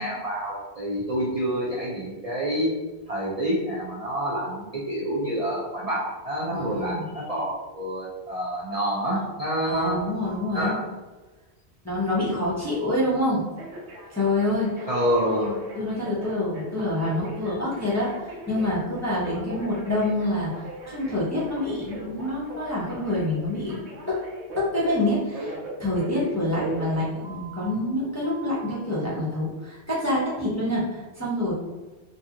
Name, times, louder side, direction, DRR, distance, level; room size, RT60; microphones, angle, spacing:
voice 1, 0.0-2.7 3.1-10.0 10.5-10.8 14.9-15.5, equal, 50° right, -6 dB, 0.5 m, -27 dB
voice 2, 6.5-7.1 9.7-10.8 11.8-13.4 14.1-14.9 15.2-20.5 20.9-24.2 24.6-31.5, left 1 dB, 20° left, -8 dB, 0.5 m, -27 dB
Telephone, 10.2-10.8 13.6-27.8 28.2-28.8, right 1 dB, 80° right, 1.0 m, -39 dB
2.6 x 2.3 x 2.7 m, 1.2 s
omnidirectional pair, 1.1 m